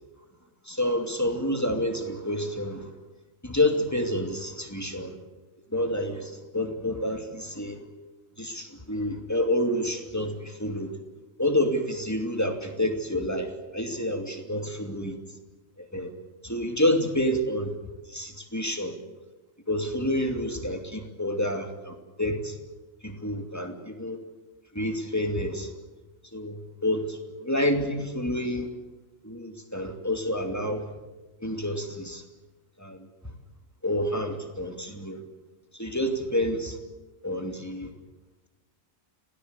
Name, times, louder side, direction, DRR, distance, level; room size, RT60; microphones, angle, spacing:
voice 1, 0.6-2.9 3.4-5.1 5.7-7.8 8.4-10.9 11.4-15.2 15.8-16.1 16.4-17.8 18.1-19.0 19.7-22.6 23.0-24.2 24.7-25.7 26.3-28.7 29.2-30.9 31.4-32.2 32.8-33.1 33.8-35.2 35.7-36.8 37.2-37.9, left 1 dB, 10° left, 5 dB, 2.6 m, -28 dB
27.0 x 17.5 x 8.2 m, 1.2 s
omnidirectional pair, 1.4 m